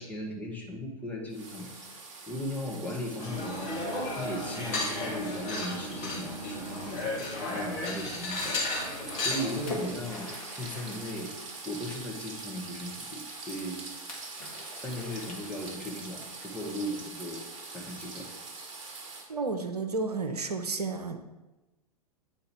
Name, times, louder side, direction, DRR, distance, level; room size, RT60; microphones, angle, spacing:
voice 1, 0.0-1.7 2.3-3.8 4.2-7.1 7.4-8.6 9.2-11.3 11.6-13.8 14.8-17.4 17.7-18.3, left 1 dB, 10° left, -3 dB, 1.5 m, -37 dB
sound 1, 1.3-19.3, right 3 dB, 50° right, 1.3 m, -44 dB
sound 2, 3.2-9.9, left 2 dB, 35° left, 2.1 m, -34 dB
Splash splatter, 9.1-12.3 14.1-16.0, left 2 dB, 65° left, 1.9 m, -43 dB
voice 2, 19.3-21.2, right 4 dB, 80° right, 6 dB, 0.7 m, -32 dB
9.3 x 4.4 x 3.6 m, 1.1 s
figure-of-eight pair, 100°, 20 cm